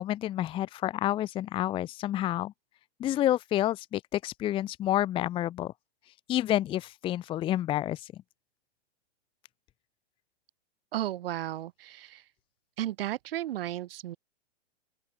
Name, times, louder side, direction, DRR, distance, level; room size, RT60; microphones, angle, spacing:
voice 1, 0.0-2.5 3.0-5.7 6.3-8.1, left 13 dB, 15° left, 0.8 m, -29 dB
voice 2, 10.9-12.2 12.8-14.2, right 13 dB, 60° right, 1.6 m, -34 dB
open air
hypercardioid pair, 150°, 33 cm